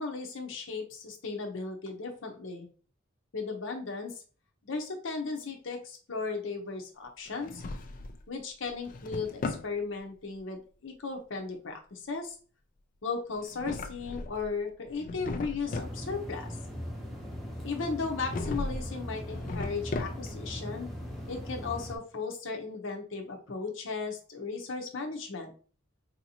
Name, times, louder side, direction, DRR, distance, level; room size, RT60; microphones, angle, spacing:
voice 1, 0.0-2.7 3.3-4.1 4.6-7.6 8.3-12.3 13.0-16.6 17.6-20.9 21.3-25.5, left 4 dB, 75° left, 2 dB, 0.7 m, -36 dB
Drawer open or close, 7.3-8.2 8.7-9.7 13.3-14.5 14.9-16.0 18.2-18.9 19.2-20.5, left 3 dB, 40° left, 0.4 m, -37 dB
sound 1, 15.6-22.0, equal, ahead, 0.7 m, -39 dB
4.2 x 2.7 x 2.8 m, 0.39 s
head